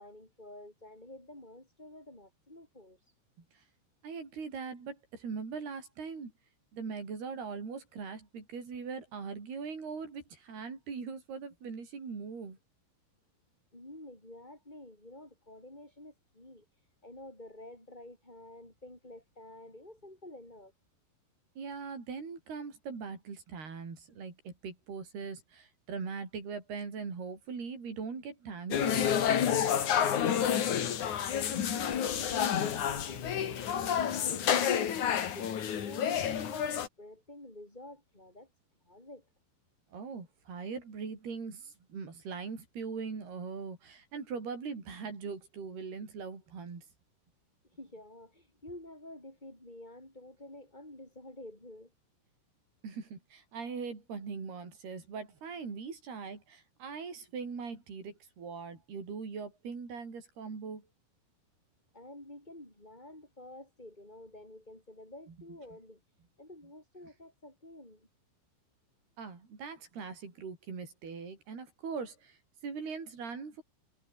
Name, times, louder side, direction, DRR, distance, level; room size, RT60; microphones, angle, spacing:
voice 1, 0.0-3.1 13.7-20.7 31.4-38.5 38.8-39.3 47.7-51.9 61.9-66.0 66.4-68.1, left 1 dB, 10° left, 6.5 m, -50 dB
voice 2, 4.0-6.3 6.7-12.6 21.6-29.1 39.9-46.8 52.8-60.9 69.2-73.6, right 5 dB, 85° right, 8.0 m, -41 dB
sound 1, 28.7-36.9, left 9 dB, 55° left, 3.3 m, -29 dB
omnidirectional pair, 4.5 m